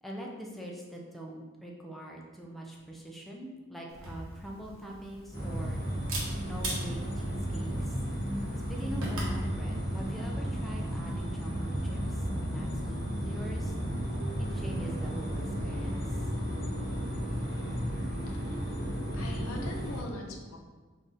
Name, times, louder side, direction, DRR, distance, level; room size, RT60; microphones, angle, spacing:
voice 1, 0.0-5.8 6.4-8.0 8.7-12.8 13.2-13.7 14.4-16.2, right 1 dB, ahead, -2 dB, 0.4 m, -43 dB
Camera, 3.9-9.4, right 1 dB, 80° right, 1.0 m, -41 dB
sound 1, 5.3-20.0, equal, 15° left, 1.3 m, -33 dB
voice 2, 18.3-18.7 19.1-20.6, left 1 dB, 85° left, 2 dB, 0.6 m, -42 dB
3.4 x 2.6 x 3.8 m, 1.4 s
head